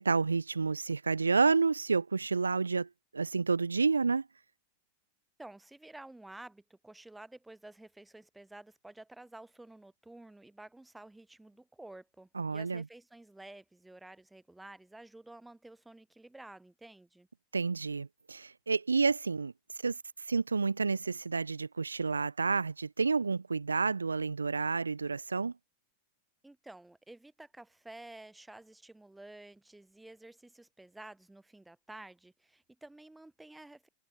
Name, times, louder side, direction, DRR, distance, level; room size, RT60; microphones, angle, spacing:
voice 1, 0.0-2.9 3.1-4.2 12.4-12.8 17.5-19.5 19.8-25.5, right 4 dB, 75° right, 0.3 m, -30 dB
voice 2, 5.4-17.3 26.4-33.9, right 2 dB, 5° right, 4.7 m, -51 dB
figure-of-eight pair, 90°, 0 cm